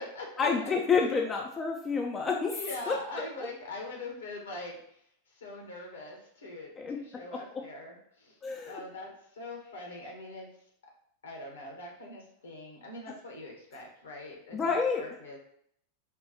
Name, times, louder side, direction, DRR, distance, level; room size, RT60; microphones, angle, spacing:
voice 1, 0.4-2.6 2.9-3.0 3.4-3.5 6.8-7.0 7.3-7.6 8.4-8.8 14.5-15.0, left 5 dB, 20° left, 1 dB, 0.4 m, -29 dB
voice 2, 2.6-4.8 5.4-8.3 8.7-10.5 11.2-15.4, left 2 dB, 70° left, 0 dB, 1.1 m, -42 dB
4.4 x 2.3 x 4.1 m, 0.69 s
figure-of-eight pair, 90°, 0 cm